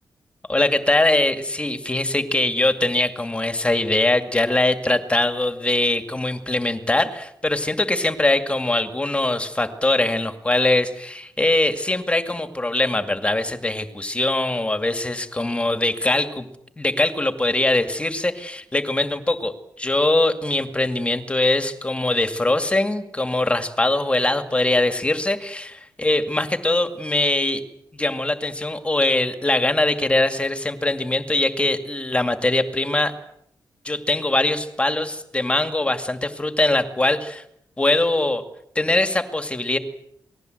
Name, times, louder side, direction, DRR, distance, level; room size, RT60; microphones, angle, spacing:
voice 1, 0.5-16.5 16.8-27.6 27.9-33.1 33.8-37.4 37.8-38.4 38.8-39.8, left 2 dB, 15° left, 7 dB, 2.3 m, -22 dB
28.0 x 20.0 x 8.0 m, 0.74 s
wide cardioid pair, 130°, 7 cm